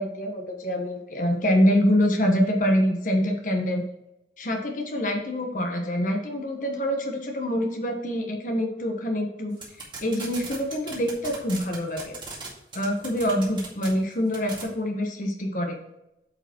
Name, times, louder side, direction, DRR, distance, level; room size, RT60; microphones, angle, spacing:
voice 1, 0.0-3.8 4.4-9.6 10.0-12.1 12.7-15.8, equal, 50° left, 2 dB, 1.3 m, -25 dB
sound 1, 9.6-12.5 12.7-13.9 14.3-14.6, right 4 dB, 25° right, 2.1 m, -37 dB
9.0 x 4.9 x 4.5 m, 0.87 s
head